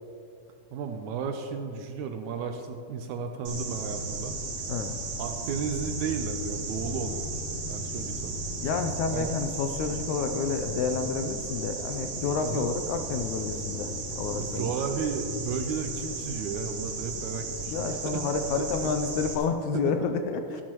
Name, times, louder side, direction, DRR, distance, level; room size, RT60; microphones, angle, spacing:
voice 1, 0.7-4.4 5.2-7.3 7.7-8.4 9.1-9.3 12.4-12.7 14.4-18.2 19.7-20.1, right 5 dB, 75° right, 6 dB, 1.8 m, -33 dB
sound 1, 3.5-19.4, right 2 dB, 60° right, 2.8 m, -35 dB
voice 2, 8.6-14.7 17.7-20.6, left 5 dB, 80° left, 7 dB, 1.8 m, -30 dB
15.0 x 11.5 x 3.0 m, 2.5 s
omnidirectional pair, 3.7 m